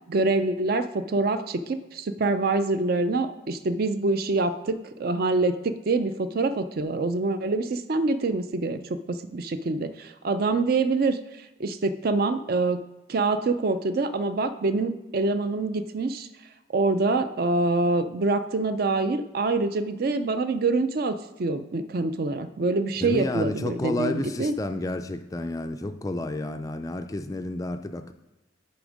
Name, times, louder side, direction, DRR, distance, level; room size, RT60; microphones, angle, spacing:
voice 1, 0.1-12.8 13.1-16.3 16.7-24.5, right 3 dB, 50° right, 11 dB, 0.4 m, -25 dB
voice 2, 23.0-28.1, left 1 dB, 15° left, 8 dB, 0.3 m, -30 dB
10.5 x 3.4 x 5.0 m, 1.0 s
head